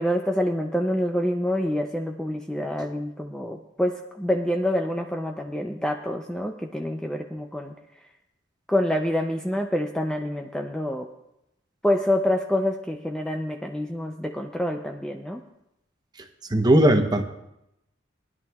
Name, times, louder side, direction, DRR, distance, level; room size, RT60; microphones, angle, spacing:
voice 1, 0.0-7.7 8.7-11.1 11.8-15.4, left 1 dB, 5° left, 3 dB, 0.4 m, -27 dB
voice 2, 16.5-17.2, right 1 dB, 20° right, 6 dB, 0.8 m, -18 dB
20.5 x 11.0 x 2.3 m, 0.85 s
head